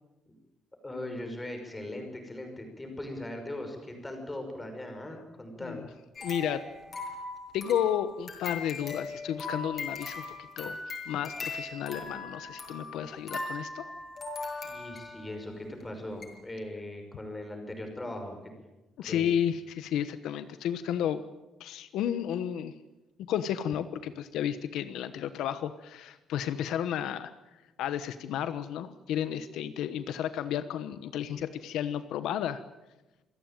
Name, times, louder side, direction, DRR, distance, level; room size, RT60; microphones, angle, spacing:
voice 1, 0.8-5.9 14.6-18.4 19.0-19.3, left 1 dB, 10° left, 4 dB, 5.7 m, -39 dB
voice 2, 6.2-6.6 7.5-10.2 10.6-10.8 11.1-13.9 19.0-21.2 21.6-22.7 23.2-27.3 27.8-32.6, left 10 dB, 75° left, 11 dB, 1.2 m, -32 dB
sound 1, 6.2-15.3 15.8-15.9 16.2-16.3, left 3 dB, 30° left, 6.8 m, -39 dB
27.0 x 16.5 x 9.0 m, 1.0 s
cardioid pair, 160°, 0 cm